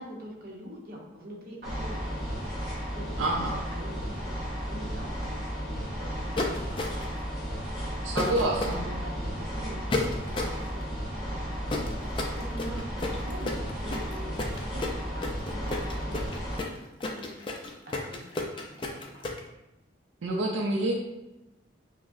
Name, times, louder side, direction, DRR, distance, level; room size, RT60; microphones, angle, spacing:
voice 1, 0.0-2.5 2.9-4.3 4.7-7.3 8.8-10.8 11.1-16.7 17.1-17.3 17.9-19.3, equal, 50° right, -2 dB, 0.8 m, -44 dB
sound 1, 1.6-16.6, equal, ahead, 0.9 m, -34 dB
voice 2, 3.2-3.5 8.0-8.8 20.2-20.9, right 2 dB, 85° right, 0 dB, 0.5 m, -27 dB
sound 2, 6.4-7.2 8.2-8.7 9.9-10.6 11.7-19.4, left 2 dB, 25° left, 0.3 m, -32 dB
5.9 x 2.1 x 2.5 m, 0.96 s
head